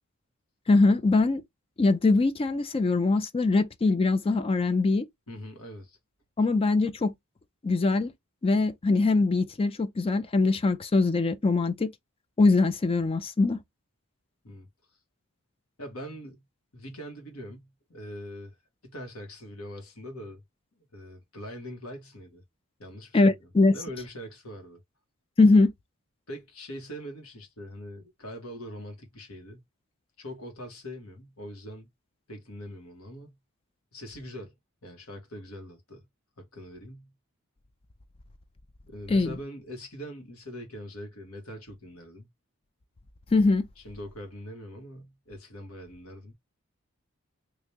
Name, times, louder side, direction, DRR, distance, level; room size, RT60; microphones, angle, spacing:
voice 1, 0.7-1.4 1.8-5.1 6.4-7.1 7.6-8.1 8.4-11.9 12.4-13.6 23.1-23.8 25.4-25.7 39.1-39.4 43.3-43.6, left 3 dB, 25° left, 0.4 m, -22 dB
voice 2, 5.3-6.0 14.4-14.7 15.8-16.4 16.7-18.6 18.8-20.4 20.9-22.4 22.8-23.3 23.7-24.8 26.3-29.6 30.2-31.9 32.3-33.3 33.9-34.5 34.8-36.1 36.4-37.1 38.9-42.3 43.8-46.3, equal, 75° left, 1.6 m, -42 dB
3.4 x 2.8 x 2.8 m
head